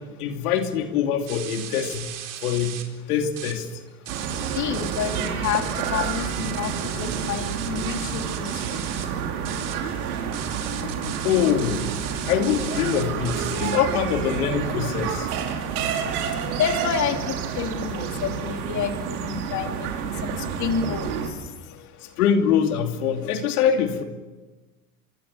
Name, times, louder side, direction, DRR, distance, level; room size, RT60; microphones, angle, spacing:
voice 1, 0.0-2.1 2.4-2.8 3.1-3.8 11.2-11.9 12.3-15.3 21.7-24.0, left 8 dB, 80° left, 5 dB, 2.8 m, -24 dB
sound 1, 1.3-2.8 3.2-3.5 3.9-9.0 9.4-9.7 10.3-13.8, right 11 dB, 45° right, 4.4 m, -37 dB
sound 2, 4.1-21.3, right 7 dB, 80° right, 5.5 m, -29 dB
voice 2, 4.6-6.7 7.0-8.5 13.5-13.6 16.6-21.1, left 8 dB, 40° left, 5 dB, 2.8 m, -29 dB
25.0 x 23.5 x 7.3 m, 1.2 s
supercardioid pair, 120°, 44 cm